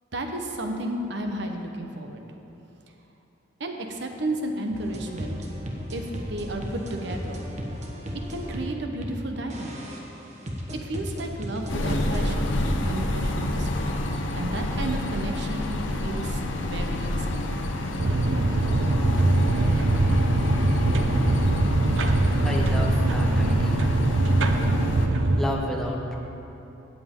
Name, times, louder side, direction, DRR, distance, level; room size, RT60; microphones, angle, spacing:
voice 1, 0.1-2.4 3.6-5.5 5.9-7.4 8.3-9.8 10.8-12.5 12.8-13.9 14.3-15.7 16.0-17.7, right 1 dB, 60° right, 3 dB, 1.0 m, -33 dB
sound 1, 4.7-9.2 9.5-12.3, equal, 35° right, 1.2 m, -35 dB
sound 2, 11.7-25.1, left 1 dB, 75° left, 0.9 m, -28 dB
sound 3, 18.0-25.4, right 2 dB, 80° right, 0.7 m, -22 dB
voice 2, 22.4-23.9 25.4-26.2, equal, ahead, -2 dB, 1.1 m, -31 dB
17.0 x 7.7 x 3.8 m, 3.0 s
head